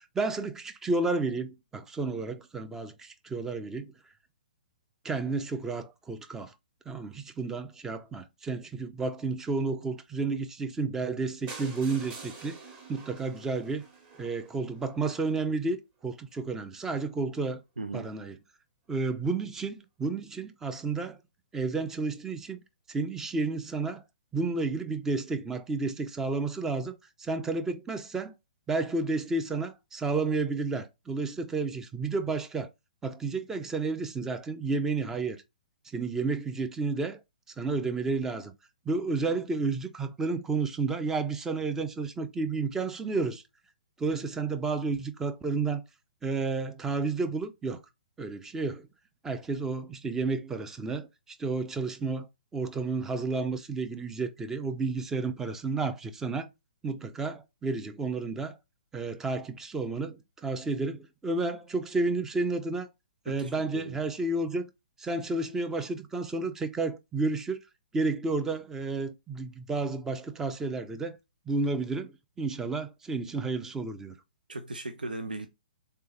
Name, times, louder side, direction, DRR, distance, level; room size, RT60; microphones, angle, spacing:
voice 1, 0.1-3.9 5.0-6.5 6.9-12.6 12.9-13.8 14.2-15.8 16.0-17.6 17.9-18.4 18.9-21.2 21.5-22.6 22.9-24.0 24.3-28.3 28.7-32.7 33.0-35.4 35.9-37.2 37.6-38.5 38.9-43.4 44.0-45.8 46.2-47.8 48.2-48.9 49.2-52.3 52.5-56.5 56.8-58.6 58.9-62.9 63.3-64.7 65.0-67.6 67.9-71.2 71.5-74.1, right 3 dB, 10° right, 0.5 m, -31 dB
sound 1, 11.5-15.4 16.0-16.1 16.3-16.5 16.7-16.8 17.0-17.1, right 4 dB, 25° right, 1.4 m, -47 dB
voice 2, 17.8-18.1 63.3-64.0 74.5-75.5, right 2 dB, 75° right, 0.6 m, -37 dB
3.8 x 3.4 x 3.1 m
figure-of-eight pair, 120°, 5 cm